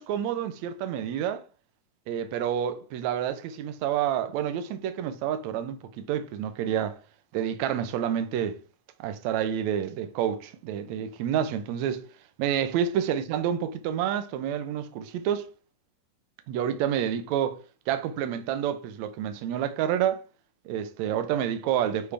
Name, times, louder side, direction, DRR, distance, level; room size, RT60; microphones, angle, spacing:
voice 1, 0.0-1.4 2.1-7.0 7.3-8.6 9.0-12.0 12.4-15.5 16.5-17.6 17.9-20.2 20.7-22.1, right 9 dB, 70° right, 1.8 m, -28 dB
7.1 x 5.0 x 3.3 m
omnidirectional pair, 3.9 m